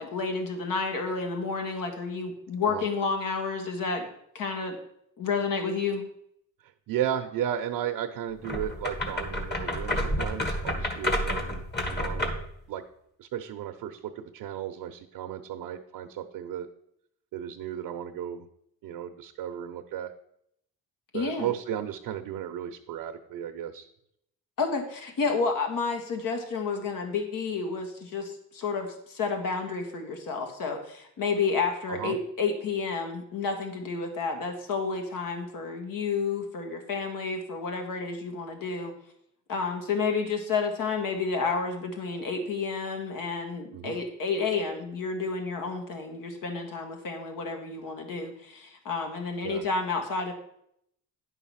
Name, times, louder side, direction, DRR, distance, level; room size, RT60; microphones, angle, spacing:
voice 1, 0.0-4.1 4.3-4.8 5.2-6.1 21.1-21.5 24.6-38.9 39.5-50.3, left 4 dB, 70° left, 4 dB, 1.9 m, -30 dB
voice 2, 6.9-12.4 12.7-12.8 13.2-16.7 17.3-18.5 18.8-20.1 21.1-23.9 31.9-32.1 43.7-44.0 49.4-49.6, right 10 dB, 85° right, 5 dB, 0.8 m, -34 dB
sound 1, 8.4-12.5, left 1 dB, 30° left, 1.8 m, -30 dB
10.0 x 5.5 x 5.7 m, 0.73 s
cardioid pair, 105°, 34 cm